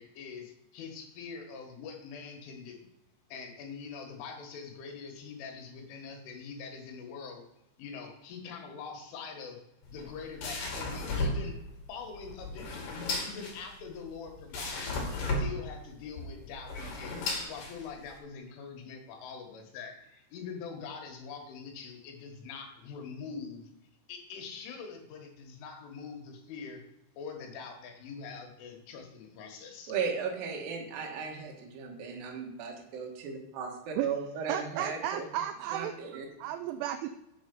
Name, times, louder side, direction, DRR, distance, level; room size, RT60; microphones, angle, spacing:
voice 1, 0.0-2.8 3.3-7.4 7.8-9.6 9.9-11.5 11.9-17.2 17.4-23.7 24.1-26.8 27.2-29.9, left 5 dB, 75° left, 3 dB, 3.9 m, -44 dB
sound 1, 9.8-18.2, left 2 dB, 55° left, 3.3 m, -35 dB
voice 2, 29.9-35.3 35.7-36.5, right 6 dB, 60° right, 0 dB, 2.8 m, -36 dB
voice 3, 34.5-35.9 36.4-37.1, right 11 dB, 85° right, 9 dB, 2.7 m, -33 dB
9.1 x 6.6 x 5.3 m, 0.92 s
omnidirectional pair, 5.8 m